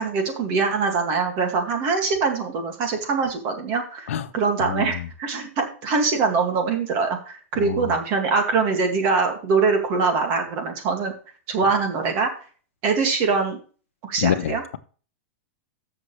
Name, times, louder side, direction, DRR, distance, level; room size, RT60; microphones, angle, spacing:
voice 1, 0.0-11.1 11.5-12.3 12.8-13.6 14.0-14.6, right 4 dB, 30° right, 2.2 m, -23 dB
voice 2, 4.6-5.1 7.6-7.9 14.2-14.8, left 9 dB, 85° left, 1.0 m, -26 dB
14.5 x 6.9 x 3.3 m
supercardioid pair, 180°, 7 cm